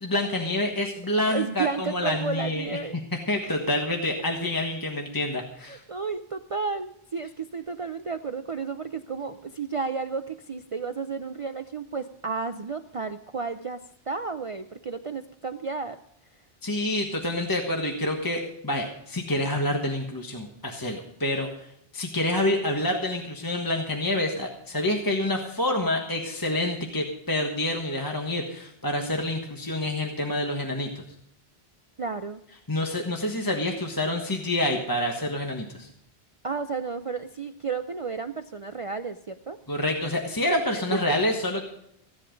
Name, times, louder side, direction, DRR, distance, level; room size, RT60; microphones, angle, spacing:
voice 1, 0.0-2.7 3.3-5.8 16.6-21.7 21.9-31.0 32.7-35.9 39.7-41.7, left 1 dB, 20° left, 1 dB, 1.4 m, -27 dB
voice 2, 1.3-2.9 3.4-3.5 5.6-16.0 32.0-32.4 36.4-39.6 40.7-41.2, right 4 dB, 40° right, 8 dB, 0.5 m, -32 dB
16.0 x 11.0 x 5.2 m, 0.76 s
omnidirectional pair, 1.1 m